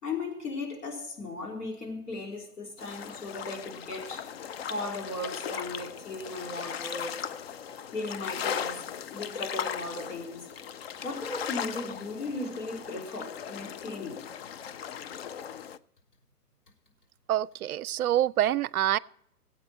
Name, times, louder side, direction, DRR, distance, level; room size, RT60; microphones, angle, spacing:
voice 1, 0.0-4.3 4.7-7.3 7.9-10.5 11.0-14.2, left 2 dB, 75° left, 3.7 m, -37 dB
sound 1, 2.8-15.8, left 8 dB, 45° left, 0.5 m, -38 dB
voice 2, 17.3-19.0, right 12 dB, 65° right, 0.5 m, -26 dB
18.5 x 8.6 x 4.4 m
hypercardioid pair, 130°, 47 cm